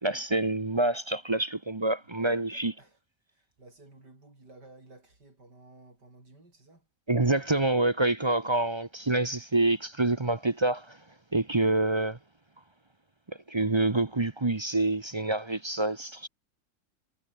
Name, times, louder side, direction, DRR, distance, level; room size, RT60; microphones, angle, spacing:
voice 1, 0.0-2.7 7.1-11.0 11.3-12.2 13.3-16.3, right 2 dB, 25° right, 0.7 m, -27 dB
voice 2, 2.1-3.0 3.3-6.9, right 2 dB, 90° right, 7.4 m, -55 dB
omnidirectional pair, 1.8 m